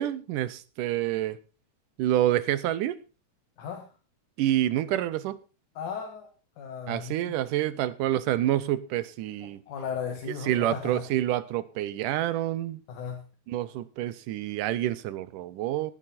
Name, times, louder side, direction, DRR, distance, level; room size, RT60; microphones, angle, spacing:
voice 1, 0.0-1.4 2.0-3.0 4.4-5.4 6.9-9.6 10.5-12.8 13.5-15.9, right 13 dB, 80° right, 2.3 m, -28 dB
voice 2, 3.6-3.9 5.8-6.3 6.6-7.2 9.4-11.1 12.9-13.2, left 6 dB, 70° left, 3.0 m, -36 dB
18.5 x 8.7 x 4.2 m
omnidirectional pair, 3.8 m